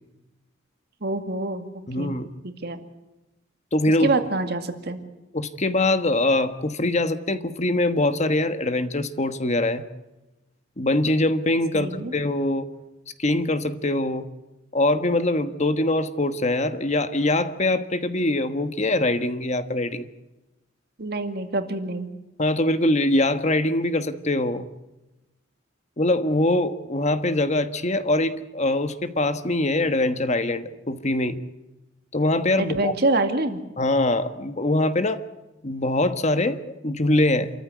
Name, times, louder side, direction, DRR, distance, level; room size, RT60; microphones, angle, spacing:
voice 1, 1.0-2.2 2.4-2.8 4.0-5.0 11.7-12.1 21.0-22.1 32.6-33.6, right 2 dB, 55° right, 7 dB, 2.2 m, -26 dB
voice 2, 1.9-2.3 3.7-4.1 5.3-9.8 10.8-12.7 13.2-14.3 14.7-20.1 22.4-24.7 26.0-31.4 32.1-32.9 33.8-35.2 35.6-37.5, left 2 dB, 35° left, 10 dB, 1.3 m, -23 dB
28.0 x 14.5 x 9.5 m, 1.0 s
head